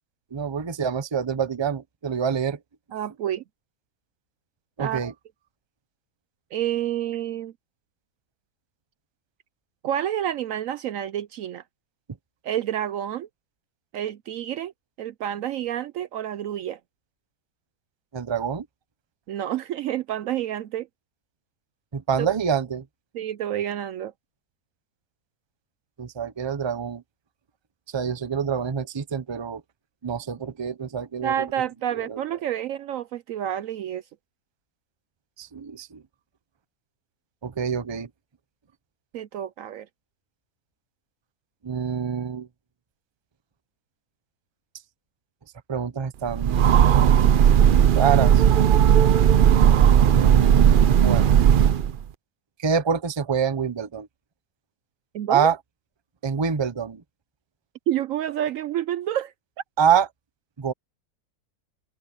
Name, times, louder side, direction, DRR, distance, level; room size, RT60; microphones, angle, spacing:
voice 1, 0.3-2.6 4.8-5.1 18.1-18.6 21.9-22.8 26.0-27.0 27.9-29.6 30.0-31.5 31.9-32.2 35.4-36.0 37.4-38.1 41.6-42.5 45.7-46.9 47.9-48.4 50.1-51.3 52.6-54.1 55.3-55.6 56.2-57.0 59.8-60.1 60.6-60.7, right 7 dB, 25° right, 0.6 m, -26 dB
voice 2, 2.9-3.4 4.8-5.1 6.5-7.5 9.8-11.6 12.4-13.3 13.9-14.7 15.0-16.8 19.3-20.9 22.2-22.3 23.1-24.1 31.2-34.0 39.1-39.9 55.1-55.5 57.9-59.3, right 11 dB, 70° right, 0.9 m, -29 dB
Train, 46.3-52.0, right 9 dB, 85° right, 0.4 m, -16 dB
open air
omnidirectional pair, 1.6 m